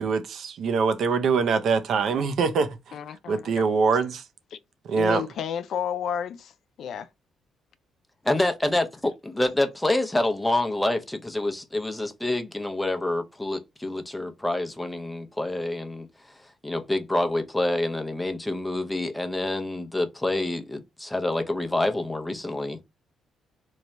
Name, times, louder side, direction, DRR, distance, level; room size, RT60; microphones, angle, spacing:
voice 1, 0.0-2.9 3.3-4.2 4.8-5.2, right 5 dB, 65° right, 0.5 m, -24 dB
voice 2, 2.9-3.6 5.0-6.5 6.8-7.1, left 8 dB, 65° left, 0.4 m, -31 dB
voice 3, 8.2-16.1 16.6-22.8, left 1 dB, 10° left, 0.7 m, -27 dB
3.1 x 2.3 x 3.9 m
cardioid pair, 90°, 0 cm